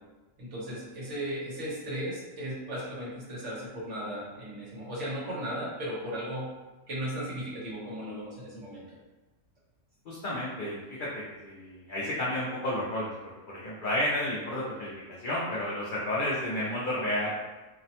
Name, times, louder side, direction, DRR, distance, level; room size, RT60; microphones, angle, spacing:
voice 1, 0.4-6.5 6.9-8.9, equal, 60° right, -6 dB, 1.1 m, -36 dB
voice 2, 10.1-13.1 13.5-17.3, left 1 dB, 75° left, -7 dB, 0.4 m, -31 dB
2.7 x 2.1 x 2.7 m, 1.2 s
omnidirectional pair, 1.5 m